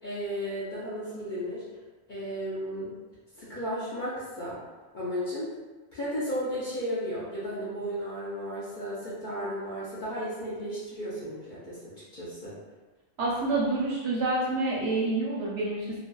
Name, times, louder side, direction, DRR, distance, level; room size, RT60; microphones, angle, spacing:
voice 1, 0.0-1.6 2.1-2.9 3.4-4.6 4.9-5.5 5.9-12.6, equal, 50° left, -9 dB, 0.6 m, -34 dB
voice 2, 13.2-16.0, right 2 dB, 65° right, -6 dB, 0.7 m, -28 dB
2.5 x 2.2 x 2.2 m, 1.2 s
omnidirectional pair, 1.3 m